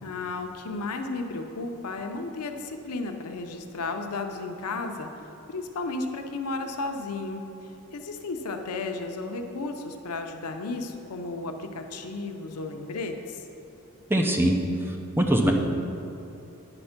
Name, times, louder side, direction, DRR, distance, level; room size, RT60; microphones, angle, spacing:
voice 1, 0.0-13.4, left 3 dB, 85° left, 5 dB, 0.6 m, -34 dB
voice 2, 14.1-14.6 15.2-15.5, right 1 dB, 10° right, 2 dB, 0.5 m, -21 dB
9.8 x 4.4 x 5.8 m, 2.8 s
head